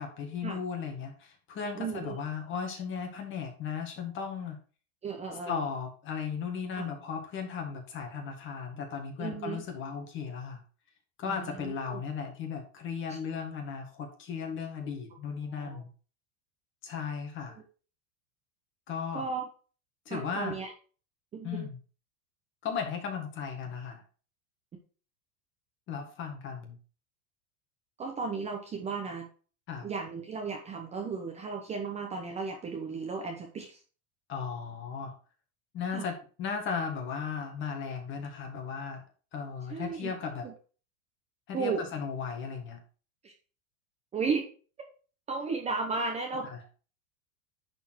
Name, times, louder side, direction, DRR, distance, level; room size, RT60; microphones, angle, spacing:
voice 1, 0.0-4.6 5.5-10.6 11.2-15.9 16.8-17.6 18.9-19.3 20.1-20.6 21.4-21.8 22.6-24.0 25.9-26.8 29.7-29.9 34.3-35.1 35.7-39.0 39.3-40.4 41.5-42.8 46.5-46.6, left 6 dB, 30° left, 3 dB, 1.8 m, -36 dB
voice 2, 1.8-2.2 5.0-5.7 6.7-6.9 9.2-9.6 11.2-12.0 13.1-13.2 15.5-15.8 17.5-17.6 19.1-19.5 20.1-20.7 21.3-21.7 28.0-29.3 29.8-33.8 35.9-36.1 39.7-40.1 40.4-40.5 41.5-41.8 43.2-43.3 44.1-44.5 45.3-46.5, right 4 dB, 15° right, 3 dB, 0.8 m, -35 dB
10.0 x 4.5 x 4.6 m, 0.38 s
supercardioid pair, 165°, 41 cm